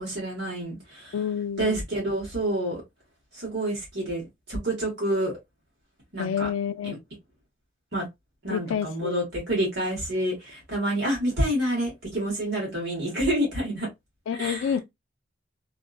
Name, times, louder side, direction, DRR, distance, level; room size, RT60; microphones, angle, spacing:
voice 1, 0.0-1.1 1.6-2.8 3.3-5.3 6.1-6.5 6.8-7.0 7.9-8.1 8.4-13.9 14.3-14.7, right 1 dB, 60° right, 1.4 m, -28 dB
voice 2, 1.1-1.8 6.2-7.0 8.5-9.2 14.3-14.8, left 8 dB, 85° left, 0.3 m, -28 dB
2.7 x 2.4 x 2.3 m
head